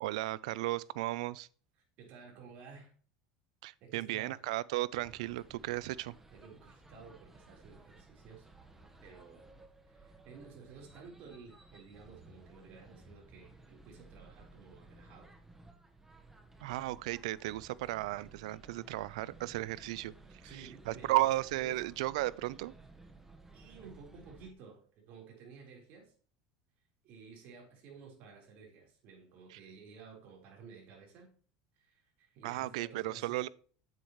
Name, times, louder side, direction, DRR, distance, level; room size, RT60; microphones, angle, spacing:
voice 1, 0.0-1.5 3.6-6.1 16.6-20.1 20.5-22.7 29.5-29.6 32.4-33.5, right 17 dB, 80° right, 0.4 m, -35 dB
voice 2, 2.0-2.9 3.8-4.4 6.3-8.5 9.0-9.5 9.9-15.3 20.4-21.3 21.6-21.8 23.5-26.1 27.0-31.3 31.8-33.4, right 5 dB, 55° right, 4.0 m, -53 dB
sound 1, 4.9-24.5, right 2 dB, 10° right, 1.2 m, -57 dB
8.5 x 8.2 x 3.1 m
supercardioid pair, 120°, 3 cm